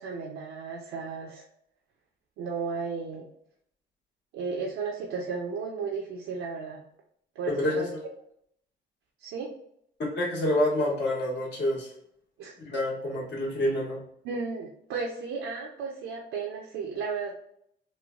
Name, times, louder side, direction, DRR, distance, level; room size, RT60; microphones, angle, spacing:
voice 1, 0.0-1.4 2.4-3.3 4.3-6.8 7.4-7.9 9.2-9.5 12.4-12.5 14.2-17.4, right 5 dB, 85° right, 0 dB, 0.5 m, -34 dB
voice 2, 10.0-11.9 12.6-14.0, left 1 dB, 60° left, -2 dB, 1.1 m, -27 dB
3.1 x 2.2 x 2.3 m, 0.70 s
cardioid pair, 90°, 20 cm